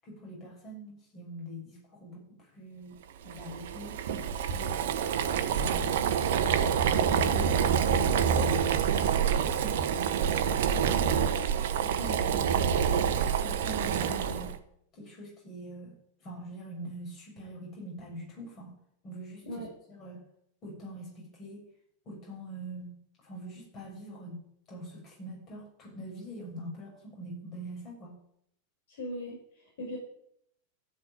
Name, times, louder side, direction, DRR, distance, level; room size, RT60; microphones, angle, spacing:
voice 1, 0.0-4.8 13.2-14.5 14.9-18.7 19.0-20.2 20.6-21.7 22.1-23.0 23.2-24.4 24.7-28.2, right 1 dB, 30° left, -2 dB, 7.0 m, -44 dB
Boiling, 3.3-14.6, right 7 dB, 55° right, 1.2 m, -27 dB
voice 2, 28.9-30.0, equal, 55° left, -1 dB, 5.4 m, -39 dB
13.5 x 6.4 x 9.5 m, 0.74 s
figure-of-eight pair, 90°, 0 cm